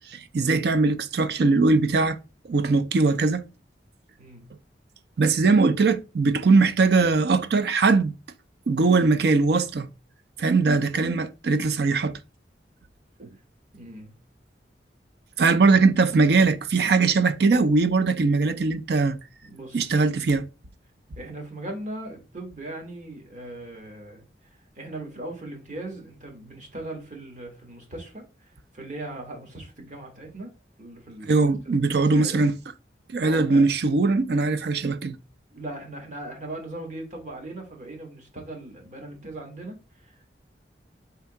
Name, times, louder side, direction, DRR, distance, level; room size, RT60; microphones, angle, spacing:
voice 1, 0.1-2.2 2.5-3.4 5.2-8.1 8.7-9.9 10.4-12.1 13.2-13.3 15.4-19.2 19.7-20.5 31.2-32.6 33.1-35.2, right 4 dB, 60° right, 0.5 m, -21 dB
voice 2, 4.2-4.5 13.7-14.2 19.4-19.9 21.2-24.2 24.7-30.5 30.8-32.4 33.2-33.7 35.6-40.3, right 1 dB, 45° right, 1.3 m, -39 dB
3.4 x 2.8 x 4.5 m
head